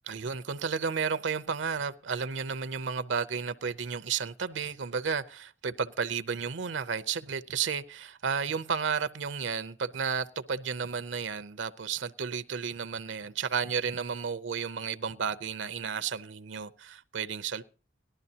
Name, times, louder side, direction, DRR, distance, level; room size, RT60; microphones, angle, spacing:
voice 1, 0.1-17.6, right 6 dB, 80° right, 0.6 m, -32 dB
18.0 x 12.0 x 2.8 m
head